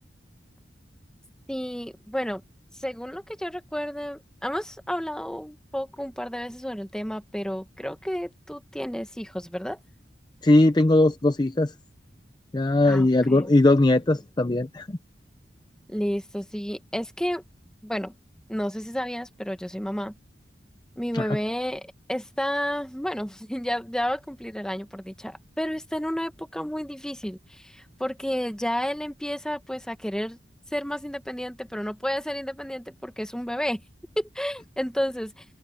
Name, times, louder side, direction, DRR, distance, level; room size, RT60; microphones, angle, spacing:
voice 1, 1.5-2.4 2.8-9.8 12.9-13.5 15.9-17.4 17.8-18.1 18.5-20.1 21.0-21.8 22.1-30.4 30.7-33.8 34.2-35.4, equal, 5° left, 1.4 m, -31 dB
voice 2, 10.4-11.7 12.5-15.0 21.1-21.4, left 2 dB, 25° left, 0.6 m, -20 dB
open air
head